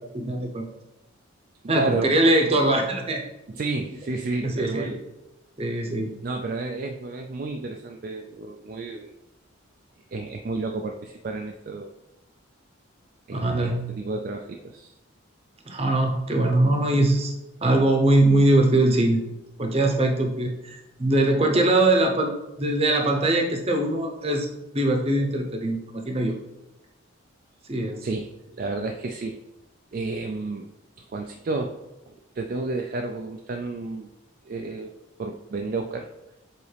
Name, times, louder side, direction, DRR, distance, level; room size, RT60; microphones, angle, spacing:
voice 1, 0.1-0.6 1.7-3.2 4.4-5.0 5.6-6.1 13.3-13.8 15.7-17.3 17.6-19.3 19.6-22.3 22.6-24.5 24.7-26.3 27.7-28.0, right 1 dB, 30° right, 2 dB, 0.8 m, -22 dB
voice 2, 1.7-2.1 3.5-5.0 6.2-9.1 10.1-11.9 13.3-14.9 28.0-29.4 29.9-30.7 31.0-31.8 32.1-34.1 34.5-36.1, right 3 dB, 45° right, 3 dB, 0.3 m, -31 dB
7.0 x 4.1 x 3.3 m, 0.94 s
head